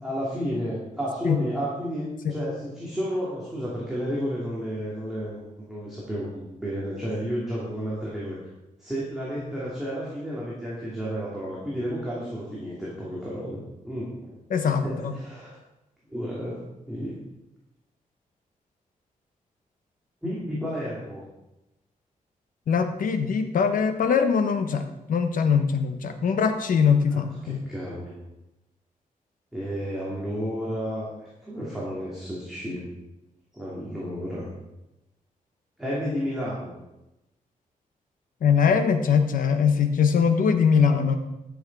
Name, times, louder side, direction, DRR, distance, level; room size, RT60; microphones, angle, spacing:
voice 1, 0.0-8.4 8.8-13.6 13.8-14.1 14.8-15.5 16.1-16.6 16.9-17.1 20.2-21.2 27.1-28.1 29.5-31.1 31.4-32.8 33.5-34.5 35.8-36.7, equal, 5° right, -8 dB, 2.6 m, -31 dB
voice 2, 14.5-15.1 22.7-24.8 25.1-27.6 38.4-41.2, left 6 dB, 80° left, 7 dB, 1.0 m, -22 dB
12.0 x 6.6 x 4.7 m, 0.95 s
wide cardioid pair, 155°, 14 cm